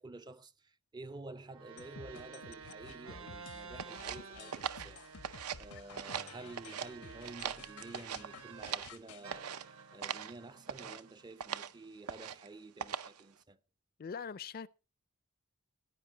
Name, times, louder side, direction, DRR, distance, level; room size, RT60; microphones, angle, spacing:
voice 1, 0.0-5.0 5.6-9.6 9.9-13.6, right 2 dB, 20° right, 0.4 m, -50 dB
sound 1, 1.5-8.9 9.2-11.6, right 5 dB, 65° right, 1.3 m, -52 dB
sound 2, 1.8-9.3, left 5 dB, 80° left, 0.8 m, -53 dB
sound 3, 3.8-5.7 5.9-6.9 7.2-9.0 9.3-9.6 10.0-10.3 10.7-11.0 11.4-11.7 12.1-12.5 12.8-13.2, right 8 dB, 80° right, 0.7 m, -41 dB
voice 2, 14.0-14.7, left 6 dB, 40° left, 0.4 m, -42 dB
16.5 x 9.7 x 2.9 m
head